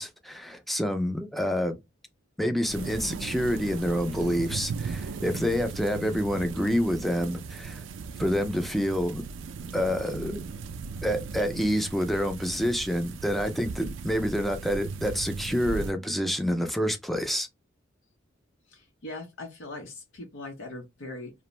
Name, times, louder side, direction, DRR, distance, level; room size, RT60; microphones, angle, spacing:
voice 1, 0.0-1.8 2.4-7.8 8.2-9.2 9.7-10.4 11.0-17.5, equal, ahead, 0.4 m, -28 dB
sound 1, 2.7-15.9, right 5 dB, 70° right, 0.3 m, -37 dB
voice 2, 18.7-21.3, left 2 dB, 90° left, 0.7 m, -40 dB
2.5 x 2.0 x 3.0 m
head